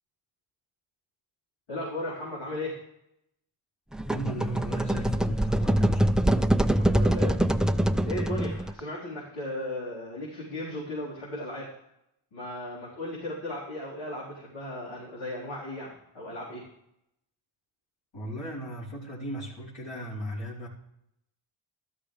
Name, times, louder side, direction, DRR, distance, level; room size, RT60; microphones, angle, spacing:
voice 1, 1.7-2.8 6.8-7.4 8.0-11.7 12.3-16.6, left 1 dB, 85° left, -9 dB, 4.5 m, -36 dB
sound 1, 3.9-8.8, right 1 dB, ahead, 0.5 m, -24 dB
voice 2, 4.1-6.2 18.1-20.7, equal, 65° left, -9 dB, 4.6 m, -37 dB
14.0 x 13.0 x 3.4 m, 0.81 s
cardioid pair, 55°, 49 cm